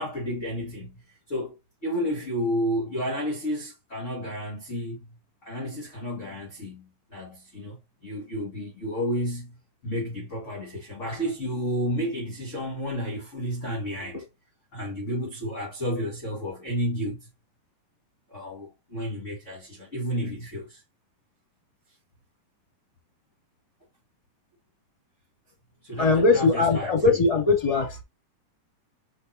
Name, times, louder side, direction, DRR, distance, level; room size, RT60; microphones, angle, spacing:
voice 1, 0.0-1.5 1.8-9.6 9.8-14.3 14.7-17.3 18.3-20.8 25.8-27.2, equal, 30° left, 1.5 m, -31 dB
voice 2, 26.0-28.0, left 3 dB, 15° left, 1.8 m, -21 dB
6.4 x 5.8 x 2.8 m
omnidirectional pair, 4.0 m